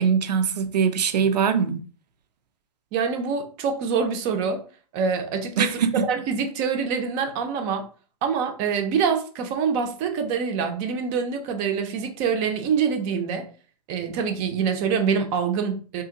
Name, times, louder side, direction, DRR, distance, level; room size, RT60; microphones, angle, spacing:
voice 1, 0.0-1.8 5.6-6.0, right 7 dB, 80° right, 0.7 m, -22 dB
voice 2, 2.9-4.6 4.9-7.9 8.2-13.5 13.9-16.0, right 6 dB, 35° right, 0.6 m, -25 dB
2.8 x 2.7 x 3.7 m
hypercardioid pair, 140°, 21 cm